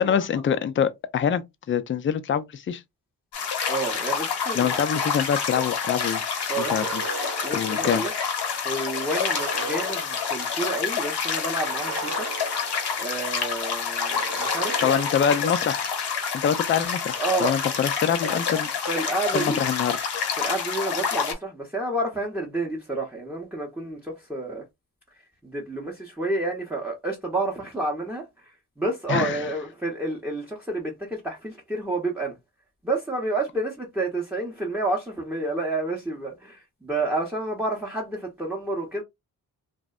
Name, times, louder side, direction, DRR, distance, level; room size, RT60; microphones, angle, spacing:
voice 1, 0.0-1.4 1.7-2.8 4.5-6.2 6.6-7.0 7.5-8.0 14.8-15.9 16.4-18.7 19.3-20.0 29.1-29.4, left 8 dB, 30° left, 0.4 m, -25 dB
sound 1, 3.3-21.3, left 6 dB, 70° left, 0.9 m, -28 dB
voice 2, 3.7-4.8 6.5-6.7 7.4-8.1 8.6-12.3 13.0-15.2 17.2-17.5 18.3-18.4 18.9-19.6 20.4-24.7 25.4-28.5 28.8-32.4 32.8-39.0, right 2 dB, 5° right, 0.7 m, -29 dB
sound 2, 6.5-8.4 9.0-10.8 11.5-13.4 14.1-15.9, right 5 dB, 50° right, 0.6 m, -38 dB
2.6 x 2.1 x 2.3 m
supercardioid pair, 50°, 41 cm